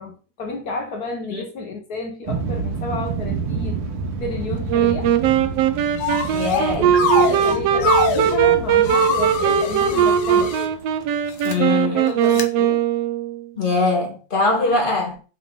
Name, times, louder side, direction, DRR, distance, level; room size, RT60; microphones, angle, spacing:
voice 1, 0.0-3.8 4.2-5.1 6.8-10.5 11.8-12.8 14.7-14.8, left 3 dB, 80° left, 0.8 m, -31 dB
sound 1, 2.3-11.6, right 4 dB, 55° right, 1.8 m, -30 dB
Wind instrument woodwind instrument, 4.7-13.4, right 9 dB, 75° right, 1.6 m, -19 dB
sound 2, 6.0-6.6 6.9-8.4 8.8-10.7 11.3-11.5 12.3-12.4, left 5 dB, 60° left, 1.3 m, -24 dB
voice 2, 6.3-6.9 11.4-12.0 13.6-15.2, left 3 dB, 20° left, 1.7 m, -22 dB
10.5 x 3.7 x 3.8 m
omnidirectional pair, 3.4 m